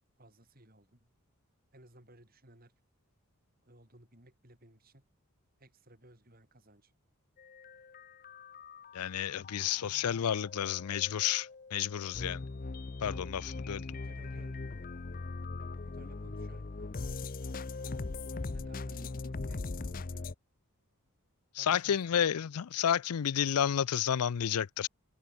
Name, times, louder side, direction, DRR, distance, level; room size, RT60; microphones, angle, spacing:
voice 1, 0.2-1.1 1.7-2.7 3.6-5.1 5.6-6.9 9.7-10.2 13.7-14.6 15.8-17.1 18.5-20.3 21.6-22.3, right 1 dB, 40° right, 5.9 m, -58 dB
sound 1, 7.4-20.3, left 3 dB, 40° left, 0.6 m, -41 dB
voice 2, 8.9-12.4 13.0-13.8 21.5-24.9, left 9 dB, 85° left, 0.5 m, -31 dB
head